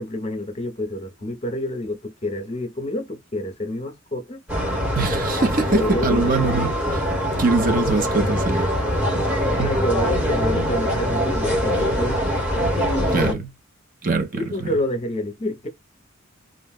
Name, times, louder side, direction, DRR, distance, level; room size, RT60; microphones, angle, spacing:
voice 1, 0.0-4.4 5.7-6.3 9.5-12.3 12.8-13.4 14.4-15.7, left 1 dB, 30° left, 0.7 m, -28 dB
sound 1, 4.5-13.3, equal, 10° right, 1.0 m, -23 dB
voice 2, 5.0-7.1 7.4-8.7 9.6-9.8 13.1-13.5 14.0-14.4, right 3 dB, 40° right, 0.6 m, -22 dB
2.5 x 2.2 x 3.4 m
head